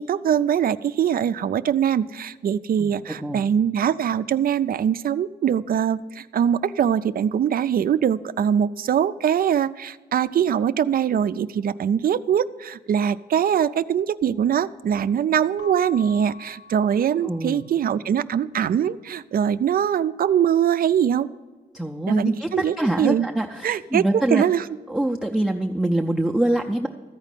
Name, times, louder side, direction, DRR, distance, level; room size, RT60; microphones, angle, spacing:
voice 1, 0.0-21.3 22.1-23.3 23.6-24.6, right 9 dB, 60° right, 16 dB, 0.4 m, -22 dB
voice 2, 2.8-3.4 17.2-17.6 21.7-24.4 24.9-26.9, right 1 dB, ahead, 1 dB, 0.5 m, -24 dB
Keyboard (musical) / Bell, 15.6-18.0, left 5 dB, 65° left, 0.4 m, -45 dB
14.0 x 5.1 x 9.0 m, 1.3 s
wide cardioid pair, 150°, 17 cm